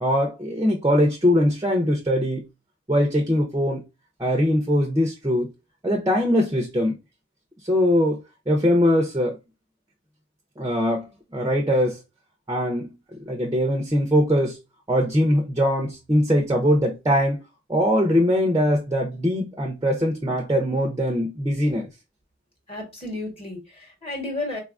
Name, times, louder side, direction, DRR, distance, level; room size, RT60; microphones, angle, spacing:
voice 1, 0.0-2.4 2.9-3.9 4.2-5.5 5.8-6.9 7.6-9.4 10.6-12.0 12.5-14.6 14.9-17.4 17.7-21.9, equal, 15° right, 0.5 m, -22 dB
voice 2, 22.7-24.6, left 2 dB, 25° left, 1.0 m, -32 dB
3.9 x 2.3 x 2.4 m
head